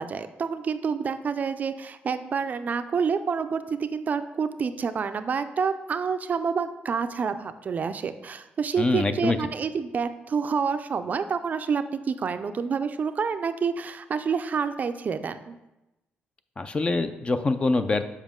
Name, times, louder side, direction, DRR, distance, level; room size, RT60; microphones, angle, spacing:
voice 1, 0.0-15.6, right 6 dB, 45° right, 10 dB, 0.4 m, -28 dB
voice 2, 8.8-9.4 16.6-18.0, left 3 dB, 30° left, 10 dB, 0.5 m, -24 dB
7.3 x 5.1 x 3.7 m, 0.95 s
cardioid pair, 95°, 4 cm